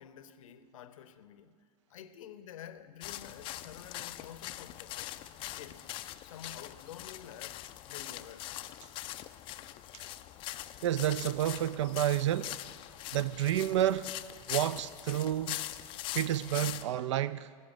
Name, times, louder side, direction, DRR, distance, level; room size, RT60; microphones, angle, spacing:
voice 1, 0.0-1.6 1.9-5.1 5.5-5.9 6.2-8.5, left 9 dB, 55° left, 0.7 m, -49 dB
sound 1, 3.0-16.8, left 15 dB, 25° left, 0.4 m, -42 dB
voice 2, 10.8-12.5 13.1-14.1 14.5-15.7 16.1-17.5, right 12 dB, 50° right, 0.4 m, -30 dB
16.5 x 6.8 x 9.4 m
figure-of-eight pair, 95°, 20 cm